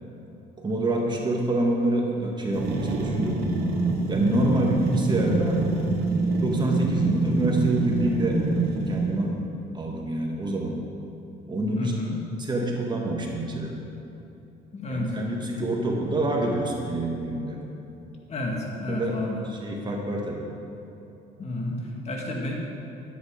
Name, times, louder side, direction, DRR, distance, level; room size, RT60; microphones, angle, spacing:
voice 1, 0.6-3.4 4.1-5.6 6.3-9.3 9.7-10.8 11.5-11.9 12.4-13.8 14.9-17.6 18.9-19.2 19.5-20.5, right 1 dB, 25° right, 0 dB, 1.7 m, -27 dB
sound 1, 2.5-9.3, right 3 dB, 75° right, 2.0 m, -25 dB
voice 2, 4.3-4.7 11.8-12.2 14.7-15.2 18.3-19.4 21.4-22.5, left 2 dB, 40° left, -1 dB, 2.1 m, -31 dB
11.0 x 9.7 x 5.1 m, 3.0 s
cardioid pair, 110°, 17 cm